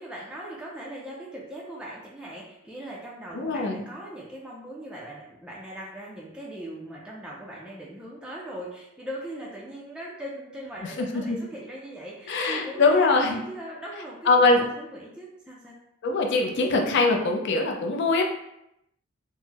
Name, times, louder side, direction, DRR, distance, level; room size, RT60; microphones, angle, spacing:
voice 1, 0.0-15.7, right 1 dB, 5° right, -5 dB, 0.4 m, -40 dB
voice 2, 3.3-3.8 10.8-11.4 12.3-13.4 14.3-14.6 16.0-18.2, left 3 dB, 55° left, 3 dB, 0.5 m, -22 dB
3.6 x 2.0 x 2.8 m, 0.82 s
head